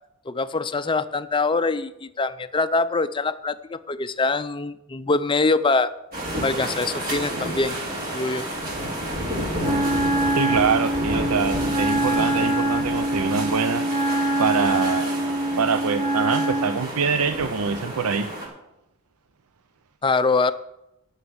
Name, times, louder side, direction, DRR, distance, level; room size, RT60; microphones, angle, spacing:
voice 1, 0.3-5.9 6.4-7.8 8.1-8.5 20.0-20.5, left 3 dB, 20° left, 13 dB, 0.5 m, -23 dB
sound 1, 6.1-18.5, right 1 dB, 40° right, 3.6 m, -30 dB
Wind instrument woodwind instrument, 9.6-16.8, right 1 dB, 25° right, 0.8 m, -24 dB
voice 2, 10.3-13.8 14.4-15.2 15.6-18.3, right 5 dB, 80° right, 9 dB, 0.6 m, -24 dB
11.5 x 6.5 x 8.0 m, 0.88 s
head